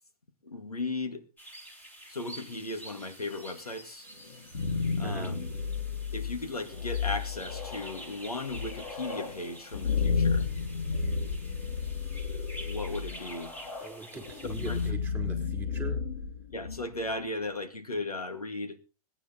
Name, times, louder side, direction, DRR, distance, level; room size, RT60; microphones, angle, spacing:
voice 1, 0.4-1.3 2.1-4.1 5.0-5.4 6.1-10.5 12.6-13.5 14.7-14.8 16.5-18.8, left 2 dB, 85° left, 2.1 m, -36 dB
sound 1, 1.4-14.9, right 1 dB, 10° left, 3.6 m, -49 dB
sound 2, 4.3-17.1, left 5 dB, 65° left, 5.0 m, -32 dB
voice 2, 13.8-16.0, right 4 dB, 10° right, 4.6 m, -41 dB
21.5 x 9.8 x 4.0 m
figure-of-eight pair, 110°, 19 cm